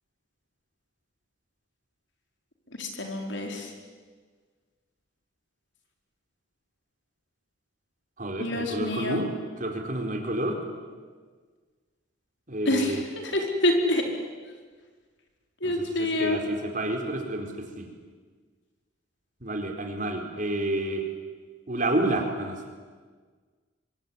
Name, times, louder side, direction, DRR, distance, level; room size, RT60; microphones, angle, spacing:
voice 1, 2.8-3.7 8.4-9.2 12.7-14.0 15.6-16.4, left 1 dB, 65° left, 3 dB, 4.7 m, -27 dB
voice 2, 8.2-9.3 9.6-10.6 12.5-13.0 15.6-17.9 19.4-21.0 21.7-22.6, right 1 dB, 40° right, 3 dB, 4.2 m, -29 dB
25.5 x 24.0 x 9.8 m, 1.5 s
head